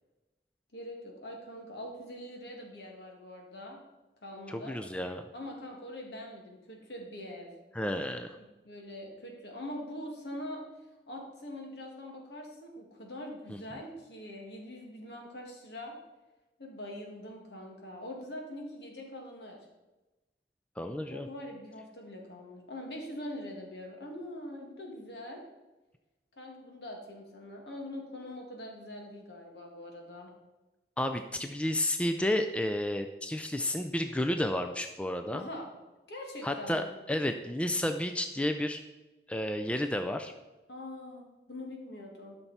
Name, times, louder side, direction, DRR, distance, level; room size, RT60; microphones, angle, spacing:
voice 1, 0.7-3.8 4.2-4.8 5.3-7.5 8.4-10.6 11.1-16.0 16.6-19.6 21.1-25.4 26.4-30.3 35.3-35.7 36.1-36.9 40.7-42.4, left 1 dB, 70° left, 0 dB, 2.0 m, -43 dB
voice 2, 4.5-5.2 7.7-8.4 13.5-13.6 20.8-21.3 31.0-35.5 36.4-38.8 39.3-40.3, left 1 dB, 5° left, 6 dB, 0.4 m, -31 dB
12.5 x 5.9 x 4.2 m, 1.1 s
head